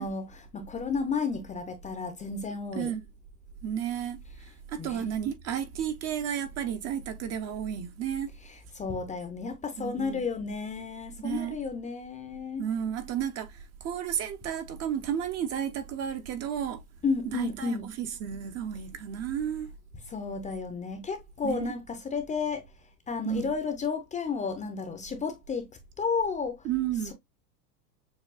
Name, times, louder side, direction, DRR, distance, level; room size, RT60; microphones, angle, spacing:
voice 1, 0.0-2.9 4.8-5.1 8.4-12.6 17.0-17.9 20.1-22.6 23.1-25.7 26.0-26.7, left 5 dB, 15° left, 0.6 m, -32 dB
voice 2, 3.6-8.3 9.8-10.2 11.2-11.6 12.6-16.8 17.3-19.7 21.4-21.7 23.2-23.5 26.6-27.1, right 9 dB, 35° right, 0.7 m, -32 dB
6.8 x 2.3 x 2.4 m
hypercardioid pair, 110°, 46 cm